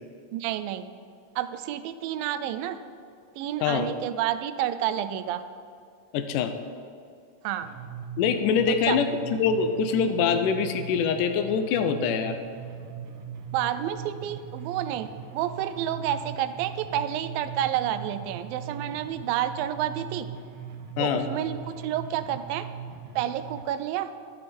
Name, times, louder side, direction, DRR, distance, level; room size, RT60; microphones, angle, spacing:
voice 1, 0.3-0.9 1.4-2.8 3.4-5.4 7.4-7.7 8.7-9.0 13.5-20.3 21.0-22.6 23.2-24.1, right 11 dB, 90° right, 11 dB, 2.4 m, -29 dB
voice 2, 3.6-3.9 6.1-6.5 8.2-9.1 9.4-12.4 21.0-21.3, left 6 dB, 75° left, 7 dB, 2.1 m, -24 dB
sound 1, 7.6-23.6, right 7 dB, 70° right, 2.4 m, -40 dB
12.0 x 12.0 x 4.3 m, 2.4 s
omnidirectional pair, 4.0 m